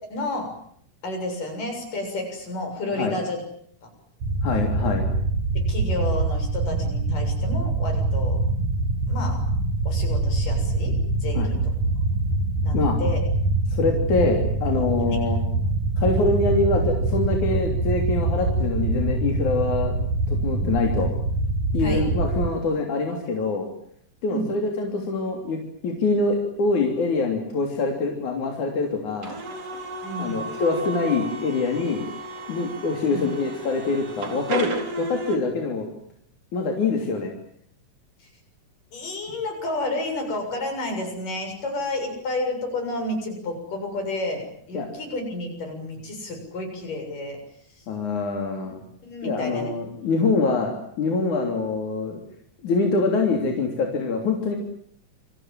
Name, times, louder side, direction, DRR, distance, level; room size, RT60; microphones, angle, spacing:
voice 1, 0.1-0.5 1.0-3.4 3.8-3.9 5.6-8.4 9.1-9.5 9.9-11.0 11.2-11.6 12.6-13.2 15.1-15.2 21.8-22.1 24.3-24.5 30.0-30.5 33.1-33.3 38.9-47.4 49.0-49.7, left 2 dB, 85° left, 4 dB, 8.9 m, -31 dB
sound 1, 4.2-22.5, right 2 dB, 70° right, 4.5 m, -24 dB
voice 2, 4.4-5.1 11.3-11.5 12.7-13.0 13.7-15.4 16.0-19.9 20.3-21.1 21.7-23.7 24.2-29.3 30.2-32.0 32.5-34.7 35.0-35.9 36.5-37.3 44.7-44.9 47.9-48.8 49.2-52.2 52.6-54.6, left 3 dB, 65° left, 2 dB, 4.7 m, -24 dB
sound 2, 29.2-35.4, right 2 dB, 50° right, 4.7 m, -33 dB
29.0 x 25.5 x 7.7 m, 0.65 s
omnidirectional pair, 3.7 m